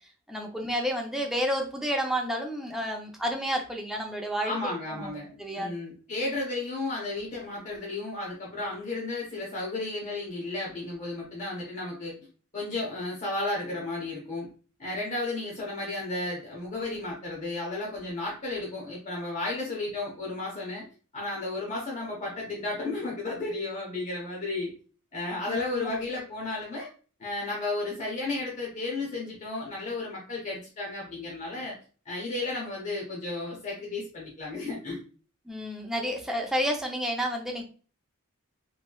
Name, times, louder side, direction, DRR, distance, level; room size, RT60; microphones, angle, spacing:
voice 1, 0.3-5.7 25.5-25.9 35.5-37.6, equal, ahead, 1 dB, 0.5 m, -31 dB
voice 2, 4.4-12.1 12.5-14.5 14.8-20.8 21.1-24.7 25.1-26.9 27.2-31.7 32.1-35.0, left 2 dB, 35° left, -4 dB, 0.9 m, -33 dB
3.1 x 2.8 x 2.2 m, 0.38 s
head